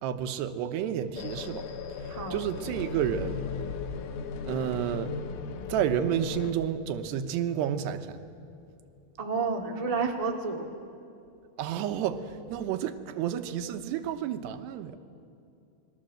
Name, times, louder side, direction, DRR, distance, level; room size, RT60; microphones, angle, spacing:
voice 1, 0.0-1.7 2.0-3.5 4.4-5.1 5.7-8.2 11.6-15.0, right 9 dB, 85° right, 9 dB, 3.1 m, -30 dB
sound 1, 1.2-6.5, left 5 dB, 65° left, 2.2 m, -37 dB
voice 2, 2.1-2.4 9.2-10.7, right 4 dB, 45° right, 2 dB, 0.4 m, -30 dB
29.0 x 22.0 x 7.7 m, 2.7 s
omnidirectional pair, 4.8 m